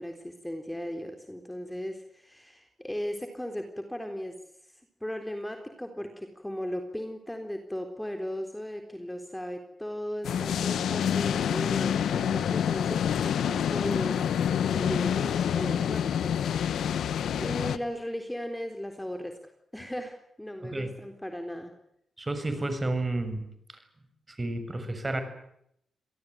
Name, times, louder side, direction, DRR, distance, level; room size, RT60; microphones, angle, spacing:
voice 1, 0.0-4.4 4.6-4.7 5.0-14.2 14.6-16.9 17.4-19.4 19.7-21.7, equal, 5° left, 5 dB, 3.8 m, -36 dB
sound 1, 10.2-17.8, left 8 dB, 80° left, 1.3 m, -27 dB
voice 2, 22.2-23.4 24.3-25.2, right 2 dB, 25° right, 9 dB, 6.7 m, -31 dB
27.0 x 18.0 x 9.4 m, 0.74 s
cardioid pair, 70°, 0 cm